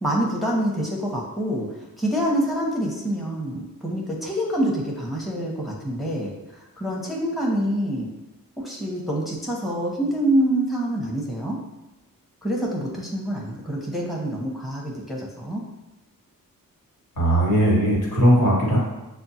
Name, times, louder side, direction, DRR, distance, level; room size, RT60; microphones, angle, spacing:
voice 1, 0.0-8.1 8.6-11.6 12.4-15.6, right 1 dB, ahead, -3 dB, 0.9 m, -26 dB
voice 2, 17.2-18.8, equal, 70° left, -4 dB, 1.5 m, -18 dB
6.0 x 2.2 x 2.8 m, 1.0 s
cardioid pair, 55°, 35 cm